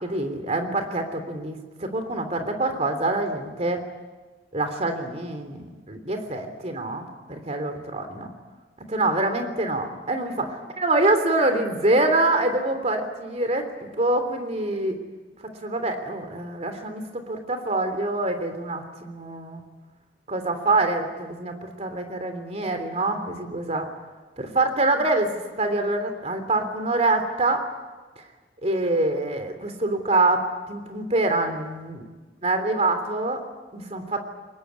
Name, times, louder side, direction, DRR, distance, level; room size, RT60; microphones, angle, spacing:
voice 1, 0.0-3.8 4.5-8.3 8.9-15.0 15.6-19.6 20.3-23.9 24.4-25.3 25.6-27.6 28.6-32.1 32.4-33.4 33.7-34.2, right 2 dB, 35° right, 7 dB, 3.3 m, -25 dB
23.0 x 20.5 x 9.7 m, 1.3 s
head